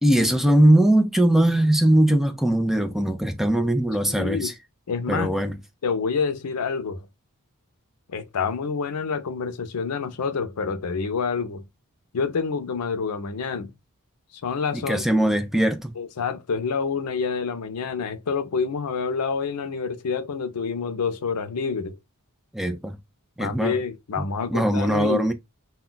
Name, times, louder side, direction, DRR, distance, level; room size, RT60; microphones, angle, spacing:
voice 1, 0.0-4.5 5.1-5.6 14.7-15.9 22.5-23.0 23.4-23.8 24.2-24.3 24.5-25.3, right 1 dB, ahead, 0.3 m, -20 dB
voice 2, 4.1-4.5 4.9-5.3 5.8-7.0 8.1-11.6 12.1-13.7 14.3-15.0 16.0-22.0 23.4-25.2, left 5 dB, 85° left, 0.5 m, -27 dB
2.3 x 2.2 x 3.7 m
head